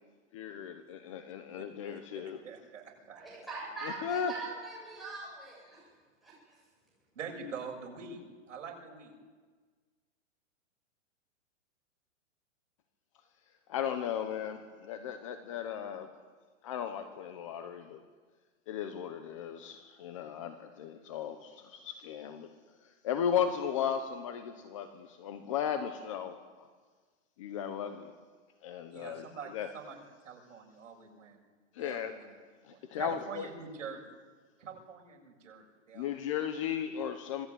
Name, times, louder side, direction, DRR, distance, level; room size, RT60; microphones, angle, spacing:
voice 1, 0.3-2.4 3.8-4.3 13.7-16.1 16.6-18.0 18.7-22.5 22.8-26.7 27.4-28.1 28.6-29.3 29.5-29.7 31.7-32.1 32.6-33.5 35.9-37.5, left 8 dB, 25° left, 9 dB, 1.0 m, -36 dB
voice 2, 1.9-3.2 7.2-8.2 8.5-9.2 28.9-30.0 30.2-31.4 31.8-32.3 32.7-34.2 34.6-36.2, right 5 dB, 75° right, 1 dB, 7.1 m, -45 dB
voice 3, 3.1-5.9 6.2-6.3, right 3 dB, ahead, -7 dB, 8.0 m, -42 dB
26.0 x 18.5 x 9.4 m, 1.5 s
hypercardioid pair, 175°, 38 cm